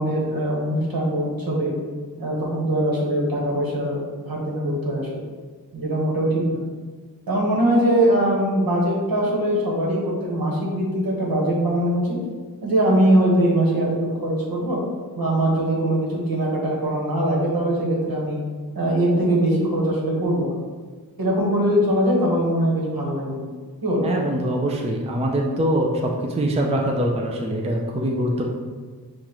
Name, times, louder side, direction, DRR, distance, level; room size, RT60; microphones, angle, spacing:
voice 1, 0.0-1.7 2.2-4.0 4.2-5.1 5.7-6.6 7.3-12.2 12.6-14.8 15.1-18.4 18.7-20.6 21.2-23.4 23.8-24.1, right 1 dB, 70° right, -3 dB, 1.4 m, -21 dB
voice 2, 24.0-28.5, right 1 dB, 15° right, 0 dB, 0.4 m, -23 dB
7.1 x 2.4 x 3.0 m, 1.5 s
wide cardioid pair, 110°, 38 cm